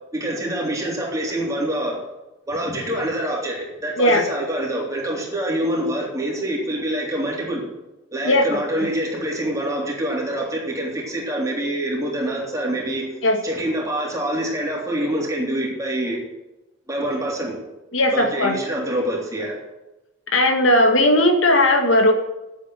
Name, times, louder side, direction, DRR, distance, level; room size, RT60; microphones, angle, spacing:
voice 1, 0.1-2.0 2.5-7.6 8.1-13.0 13.4-16.2 16.9-17.6 18.1-19.6, right 1 dB, 15° right, -3 dB, 3.3 m, -25 dB
voice 2, 8.2-8.6 13.2-13.4 17.9-18.6 20.3-22.1, left 1 dB, 85° left, 4 dB, 1.8 m, -17 dB
9.1 x 8.2 x 7.6 m, 0.99 s
head